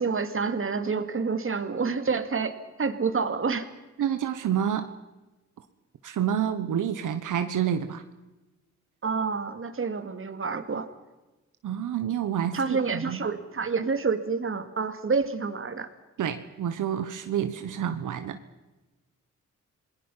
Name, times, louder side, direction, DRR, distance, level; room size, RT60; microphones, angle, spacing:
voice 1, 0.0-3.7 9.0-10.9 12.5-15.9, right 5 dB, 45° right, 10 dB, 2.3 m, -28 dB
voice 2, 4.0-4.9 6.0-8.0 11.6-13.2 16.2-18.4, right 9 dB, 85° right, 9 dB, 1.3 m, -28 dB
28.5 x 20.0 x 5.7 m, 1.1 s
cardioid pair, 85°, 30 cm